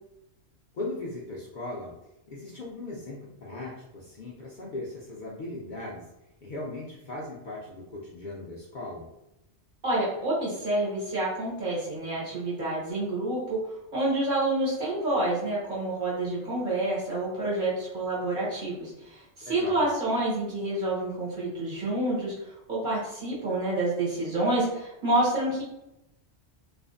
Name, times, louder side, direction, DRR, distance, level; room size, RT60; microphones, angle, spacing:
voice 1, 0.7-1.9 2.3-6.0 6.4-9.1 19.4-19.8, left 2 dB, 55° left, -5 dB, 0.5 m, -38 dB
voice 2, 9.8-13.6 13.9-22.3 22.7-25.6, right 2 dB, 45° right, -6 dB, 1.1 m, -28 dB
2.6 x 2.4 x 2.4 m, 0.90 s
omnidirectional pair, 1.2 m